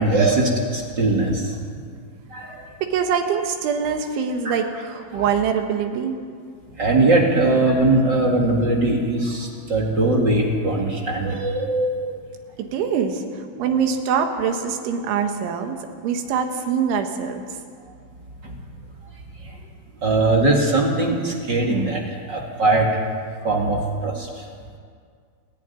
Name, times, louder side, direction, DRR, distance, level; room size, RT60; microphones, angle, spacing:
voice 1, 0.0-1.5 2.3-2.6 4.4-4.6 5.1-5.3 6.8-12.1 13.6-13.7 18.4-18.5 19.4-19.5 20.0-22.9 23.4-24.4, right 2 dB, 40° right, 0 dB, 1.6 m, -20 dB
voice 2, 2.8-6.2 12.6-13.2 13.6-17.4, right 7 dB, 85° right, 5 dB, 4.1 m, -24 dB
29.5 x 11.0 x 9.7 m, 2.1 s
omnidirectional pair, 5.3 m